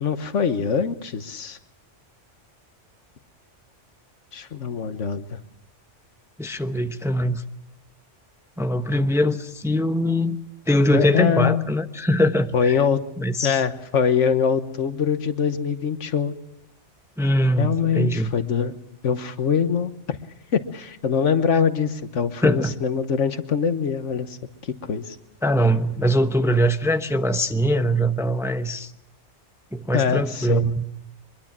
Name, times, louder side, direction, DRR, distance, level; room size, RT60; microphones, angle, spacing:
voice 1, 0.0-1.6 4.3-5.4 10.9-11.6 12.5-13.0 13.4-16.3 17.6-18.7 19.0-20.2 20.5-24.4 24.6-25.2 29.9-30.7, left 7 dB, 75° left, 11 dB, 1.5 m, -23 dB
voice 2, 6.4-7.4 8.6-10.4 10.7-12.8 13.2-13.6 17.2-18.3 22.4-22.7 25.4-28.9 29.7-30.8, equal, 5° right, 8 dB, 0.8 m, -22 dB
23.5 x 22.0 x 7.4 m, 0.80 s
omnidirectional pair, 1.3 m